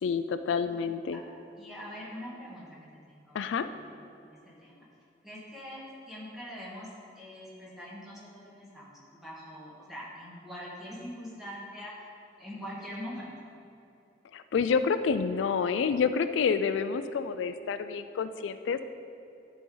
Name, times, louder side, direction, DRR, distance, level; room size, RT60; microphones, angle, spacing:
voice 1, 0.0-1.2 3.3-3.7 14.3-18.8, left 6 dB, 85° left, 11 dB, 0.3 m, -28 dB
voice 2, 1.6-2.7 3.1-3.4 3.7-4.9 5.2-6.9 7.2-11.9 12.4-13.4, equal, ahead, -8 dB, 1.8 m, -43 dB
11.0 x 5.2 x 3.9 m, 2.8 s
head